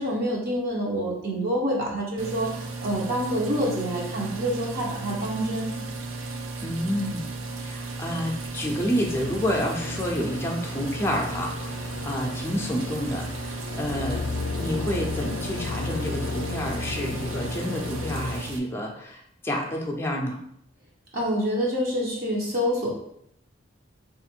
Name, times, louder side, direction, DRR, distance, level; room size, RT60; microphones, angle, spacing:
voice 1, 0.0-5.7 21.1-22.9, equal, 45° right, -4 dB, 0.8 m, -27 dB
sound 1, 2.2-18.6, right 3 dB, 90° right, 0.5 m, -35 dB
voice 2, 6.6-7.3 7.6-14.3 14.5-20.4, equal, 10° left, 0 dB, 0.5 m, -29 dB
sound 2, 9.0-18.4, left 4 dB, 75° left, 0.3 m, -34 dB
3.6 x 2.5 x 4.4 m, 0.74 s
head